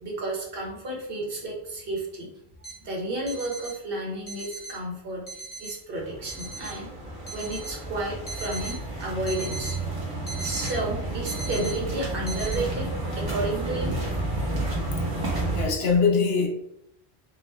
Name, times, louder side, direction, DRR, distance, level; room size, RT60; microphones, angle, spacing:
voice 1, 0.0-2.3 2.8-5.2 5.6-6.9 7.3-10.0 10.4-13.9, right 2 dB, 65° right, -1 dB, 1.0 m, -32 dB
sound 1, 2.6-2.7 3.3-3.7 4.3-4.7 5.3-5.7 6.3-6.7 7.3-7.7 8.3-8.7 9.3-9.7 10.3-10.7 11.3-11.7 12.3-12.6, right 2 dB, 25° left, 0.6 m, -37 dB
sound 2, 5.9-15.7, right 2 dB, 25° right, 0.8 m, -31 dB
voice 2, 15.5-16.5, left 5 dB, 75° left, 1 dB, 0.8 m, -23 dB
2.9 x 2.0 x 3.2 m, 0.75 s
omnidirectional pair, 1.1 m